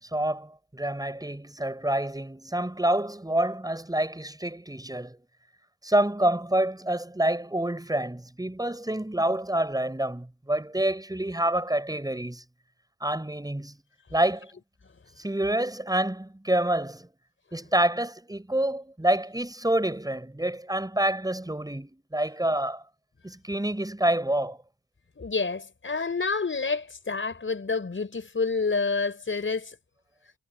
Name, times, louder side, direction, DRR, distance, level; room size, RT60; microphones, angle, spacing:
voice 1, 0.1-5.2 5.8-12.4 13.0-13.8 14.1-14.5 15.2-17.1 17.5-22.8 23.2-24.6, right 1 dB, 10° right, 6.3 m, -27 dB
voice 2, 25.2-29.7, left 4 dB, 40° left, 5.4 m, -28 dB
cardioid pair, 60°, 31 cm